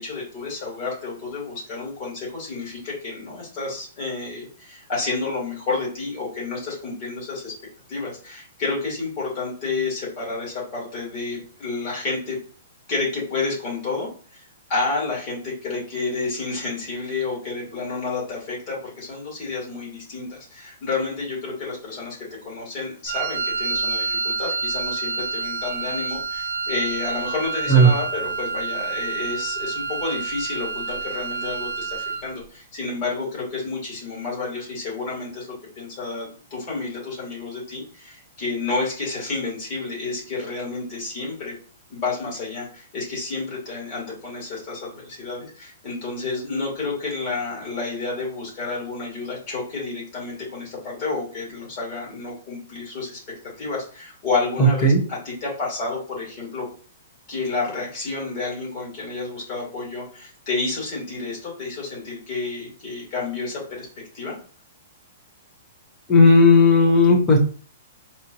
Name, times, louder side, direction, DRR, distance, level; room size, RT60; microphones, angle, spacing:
voice 1, 0.0-7.6 7.9-12.4 12.9-14.4 14.7-41.5 41.9-53.2 53.6-56.7 57.3-63.9 64.1-64.3, left 3 dB, 30° left, -5 dB, 1.9 m, -30 dB
Wind instrument woodwind instrument, 23.1-32.3, right 4 dB, 55° right, 0.8 m, -28 dB
voice 2, 54.6-55.0 66.1-67.4, left 1 dB, 15° left, -1 dB, 0.8 m, -14 dB
4.3 x 2.5 x 2.8 m, 0.40 s
hypercardioid pair, 170°, 0 cm